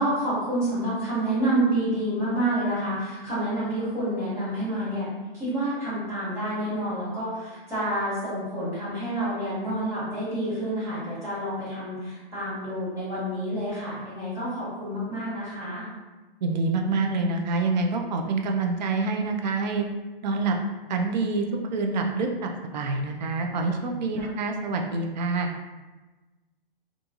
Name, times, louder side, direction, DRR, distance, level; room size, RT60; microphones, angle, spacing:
voice 1, 0.0-15.8 24.2-24.3, right 1 dB, 10° right, -12 dB, 1.3 m, -28 dB
voice 2, 16.4-19.9 20.2-20.6 20.9-25.5, right 3 dB, 50° right, 3 dB, 0.4 m, -26 dB
2.8 x 2.4 x 2.3 m, 1.2 s
hypercardioid pair, 150°, 29 cm